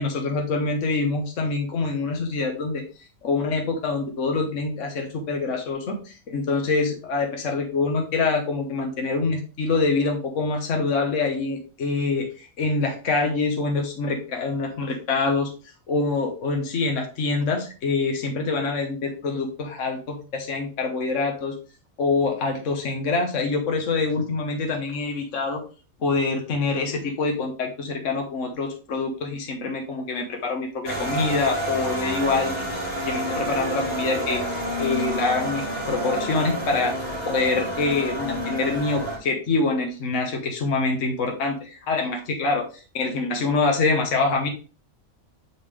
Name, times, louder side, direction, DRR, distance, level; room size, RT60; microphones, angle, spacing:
voice 1, 0.0-2.8 3.2-15.5 15.9-21.5 22.0-25.6 26.0-32.7 33.1-34.4 34.8-36.9 37.3-44.5, left 3 dB, 60° left, 2 dB, 1.4 m, -25 dB
sound 1, 30.8-39.2, right 1 dB, 30° left, 1.9 m, -29 dB
9.3 x 3.7 x 3.2 m, 0.35 s
omnidirectional pair, 1.5 m